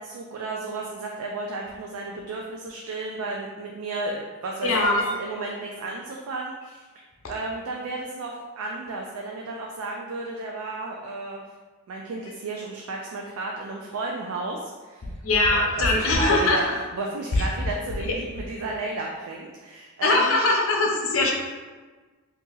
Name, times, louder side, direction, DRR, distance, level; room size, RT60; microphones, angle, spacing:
voice 1, 0.0-7.0 7.3-11.4 11.9-15.1 15.5-16.6 16.9-20.4, right 3 dB, 85° right, -1 dB, 0.4 m, -33 dB
voice 2, 4.6-5.1 15.2-16.6 17.3-17.4 20.0-21.3, left 2 dB, 70° left, -1 dB, 0.6 m, -21 dB
2.7 x 2.6 x 3.8 m, 1.3 s
head